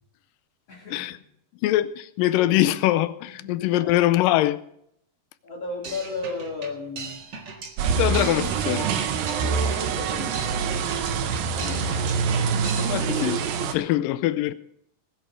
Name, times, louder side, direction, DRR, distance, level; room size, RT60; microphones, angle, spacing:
voice 1, 0.7-1.3 3.4-3.9 5.4-7.2 9.4-11.0 11.6-12.2, left 3 dB, 45° left, 3.3 m, -35 dB
voice 2, 1.6-4.6 8.0-8.9 12.8-14.5, left 14 dB, 80° left, 2.3 m, -23 dB
sound 1, 5.8-13.3, right 4 dB, 40° right, 1.7 m, -39 dB
sound 2, 7.8-13.7, right 6 dB, 80° right, 2.9 m, -25 dB
19.5 x 8.6 x 5.0 m
omnidirectional pair, 4.1 m